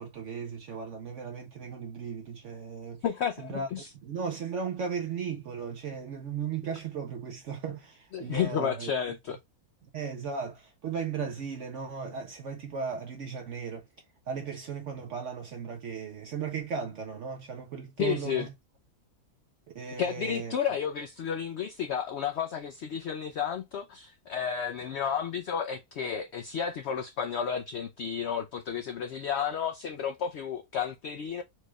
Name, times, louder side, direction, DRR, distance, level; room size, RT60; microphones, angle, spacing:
voice 1, 0.0-3.0 3.4-3.7 4.0-8.9 9.9-13.8 14.3-18.5 19.7-20.5, right 6 dB, 60° right, 0.9 m, -36 dB
voice 2, 3.0-3.9 8.1-9.4 18.0-18.5 20.0-31.4, left 7 dB, 70° left, 0.6 m, -32 dB
4.5 x 3.1 x 2.2 m
omnidirectional pair, 1.5 m